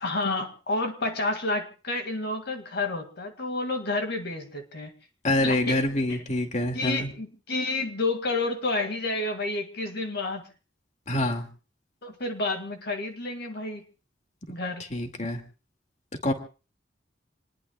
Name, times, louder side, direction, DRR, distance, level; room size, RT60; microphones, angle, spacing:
voice 1, 0.0-4.9 5.4-5.8 6.1-6.2 6.7-10.4 12.0-13.8 14.5-14.9, left 2 dB, 60° left, 6 dB, 2.1 m, -30 dB
voice 2, 5.2-7.1 11.1-11.5 14.8-15.4 16.2-16.3, left 1 dB, 40° left, 5 dB, 2.2 m, -26 dB
27.5 x 20.5 x 2.3 m, 0.35 s
head